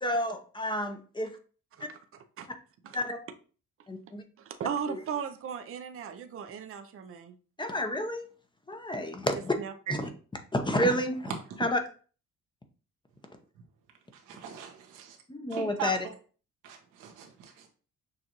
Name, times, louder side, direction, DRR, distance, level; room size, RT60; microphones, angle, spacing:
voice 1, 0.0-1.3 1.8-1.9 2.9-3.2 3.9-4.2 4.9-5.0 7.6-8.3 8.7-9.6 9.9-10.0 10.5-11.3 11.6-11.8 15.3-16.0, left 1 dB, 15° left, 6 dB, 0.8 m, -30 dB
voice 2, 4.4-7.4 9.6-10.1, right 7 dB, 45° right, 7 dB, 0.6 m, -37 dB
voice 3, 14.1-15.2 15.5-16.0 16.6-17.7, right 6 dB, 90° right, 2 dB, 1.1 m, -40 dB
6.5 x 2.5 x 2.9 m, 0.38 s
cardioid pair, 90°, 30 cm